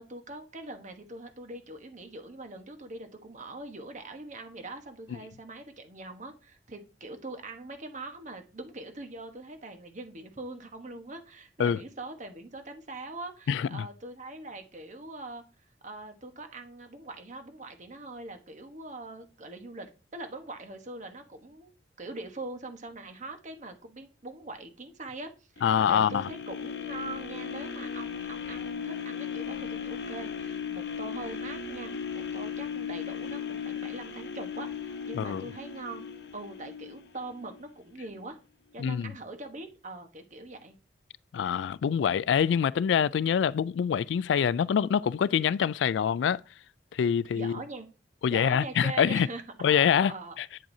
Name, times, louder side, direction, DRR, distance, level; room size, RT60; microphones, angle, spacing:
voice 1, 0.0-15.4 15.8-21.7 22.0-36.0 36.3-38.4 38.7-40.8 47.3-47.9 48.3-50.3, right 2 dB, 45° right, 1.1 m, -42 dB
voice 2, 13.5-13.9 25.6-26.3 35.1-35.5 38.8-39.1 41.3-46.4 46.9-47.6 48.2-49.3 49.6-50.5, left 8 dB, 85° left, 0.3 m, -25 dB
sound 1, 25.6-37.7 38.1-38.2, left 7 dB, 70° left, 0.8 m, -37 dB
8.6 x 7.5 x 2.7 m
head